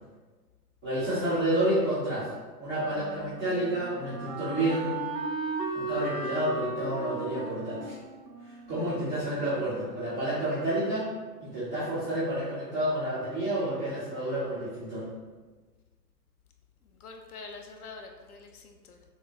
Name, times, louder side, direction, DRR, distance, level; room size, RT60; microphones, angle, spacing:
voice 1, 0.8-2.3 2.6-4.9 5.7-8.0 8.7-11.1 11.4-15.0, right 1 dB, 5° left, -16 dB, 0.3 m, -29 dB
Wind instrument woodwind instrument, 2.9-9.8, right 3 dB, 85° right, 0.8 m, -37 dB
voice 2, 16.8-19.0, left 4 dB, 65° left, 4 dB, 0.8 m, -46 dB
6.2 x 2.1 x 3.7 m, 1.3 s
figure-of-eight pair, 110°, 48 cm